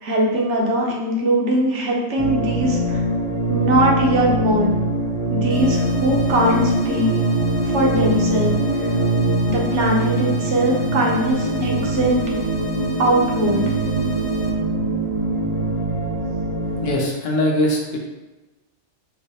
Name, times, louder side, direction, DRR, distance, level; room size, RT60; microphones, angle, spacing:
voice 1, 0.0-3.0 3.5-4.8 5.3-7.1 7.6-8.9 9.5-12.2 13.0-13.6, right 1 dB, 70° right, -1 dB, 1.0 m, -21 dB
sound 1, 2.2-16.9, right 2 dB, 35° right, 0.7 m, -22 dB
sound 2, 5.5-14.5, right 2 dB, 45° left, 0.3 m, -36 dB
voice 2, 16.8-18.0, left 1 dB, 65° left, -1 dB, 0.8 m, -21 dB
4.6 x 2.1 x 2.7 m, 1.1 s
omnidirectional pair, 1.2 m